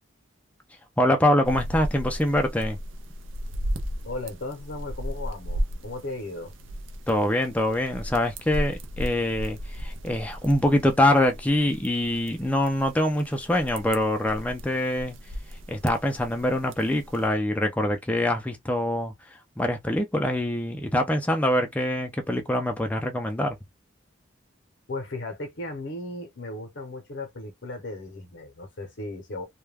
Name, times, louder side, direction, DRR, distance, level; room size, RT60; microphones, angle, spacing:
voice 1, 1.0-2.8 7.1-15.2 15.7-23.6, left 1 dB, 5° left, 0.3 m, -24 dB
sound 1, 1.4-17.3, equal, 75° right, 0.5 m, -36 dB
voice 2, 4.0-6.5 24.9-29.5, left 2 dB, 65° left, 0.7 m, -36 dB
2.2 x 2.2 x 3.2 m
head